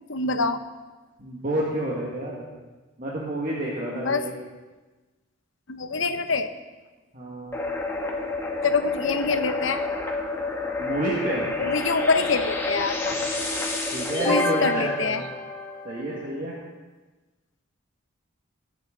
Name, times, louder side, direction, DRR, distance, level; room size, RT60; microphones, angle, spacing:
voice 1, 0.1-0.6 3.9-4.2 5.7-6.5 8.6-9.8 11.6-13.1 14.2-15.2, left 4 dB, 70° left, 10 dB, 0.8 m, -25 dB
voice 2, 1.2-2.5 3.0-4.3 7.1-7.6 10.8-11.5 13.9-15.1 15.8-16.5, right 1 dB, 40° right, -5 dB, 1.8 m, -29 dB
sound 1, 7.5-16.2, left 2 dB, 10° left, 1.3 m, -29 dB
21.5 x 7.9 x 3.9 m, 1.2 s
head